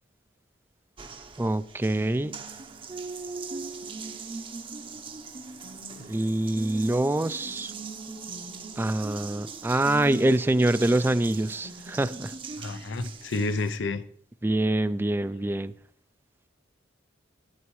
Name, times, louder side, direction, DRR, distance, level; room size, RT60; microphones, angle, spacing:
Water tap faucet, 1.0-13.8, right 4 dB, 30° right, 0.7 m, -40 dB
voice 1, 1.4-2.3 6.1-7.7 8.8-12.3 14.4-15.7, right 1 dB, 10° right, 0.3 m, -25 dB
voice 2, 12.6-14.0, left 3 dB, 85° left, 0.6 m, -30 dB
14.0 x 9.3 x 3.1 m
head